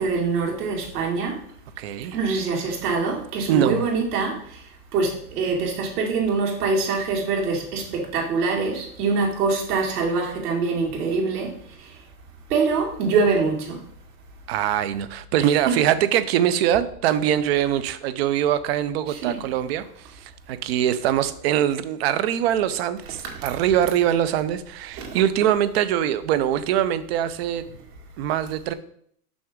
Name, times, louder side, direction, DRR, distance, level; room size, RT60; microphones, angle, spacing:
voice 1, 0.0-1.4 2.1-4.6 4.9-11.5 12.5-13.8 15.7-15.8 19.1-19.4 23.3-23.5 25.0-25.2, right 4 dB, 70° right, -1 dB, 2.5 m, -24 dB
voice 2, 1.8-2.2 3.5-3.8 14.5-27.6 28.2-28.7, right 10 dB, 40° right, 13 dB, 0.5 m, -23 dB
6.1 x 5.9 x 3.6 m, 0.64 s
hypercardioid pair, 135°, 48 cm